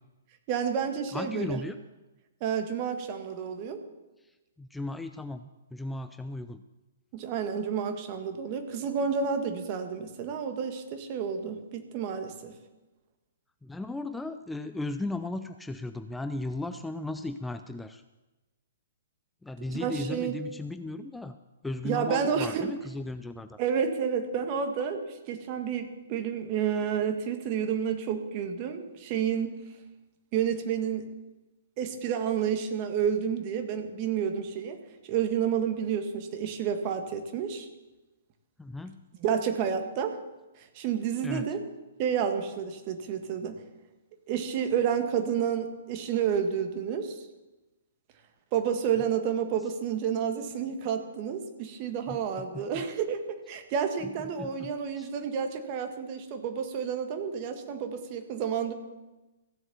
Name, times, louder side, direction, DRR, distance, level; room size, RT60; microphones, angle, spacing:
voice 1, 0.5-1.6 2.4-3.8 7.1-12.5 19.7-20.4 21.8-22.7 23.6-29.5 30.3-31.1 31.8-34.8 35.0-37.7 39.2-40.2 40.6-41.6 42.0-43.6 44.3-47.2 48.5-53.2 53.5-58.7, right 7 dB, 35° right, 6 dB, 1.6 m, -30 dB
voice 2, 1.1-1.8 4.6-6.6 13.6-18.0 19.4-21.4 21.6-23.6 38.6-39.0 41.2-41.4 52.1-52.8 54.0-54.1 54.4-55.1, left 2 dB, 5° left, 9 dB, 0.4 m, -36 dB
15.0 x 7.8 x 7.0 m, 1.1 s
figure-of-eight pair, 120°, 0 cm